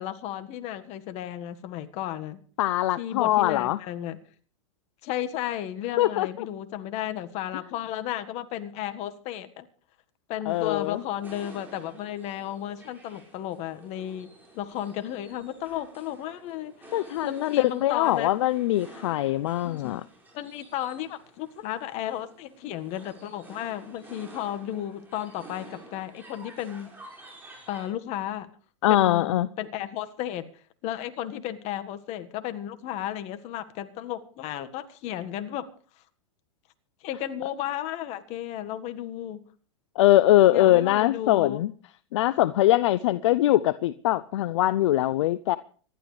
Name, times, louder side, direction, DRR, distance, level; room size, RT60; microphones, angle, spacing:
voice 1, 0.0-2.4 3.0-4.2 5.0-9.7 10.3-18.3 19.6-19.9 20.3-26.9 27.7-28.5 28.9-30.5 30.8-35.6 37.0-39.4 40.5-41.6, left 11 dB, 40° left, 1.6 m, -34 dB
voice 2, 2.6-3.8 6.0-6.5 10.5-11.0 16.9-20.0 28.8-29.5 40.0-41.7 42.1-45.6, left 15 dB, 65° left, 0.6 m, -22 dB
sound 1, 10.5-27.9, right 2 dB, 10° right, 5.9 m, -50 dB
25.5 x 12.0 x 3.3 m
hypercardioid pair, 115°, 17 cm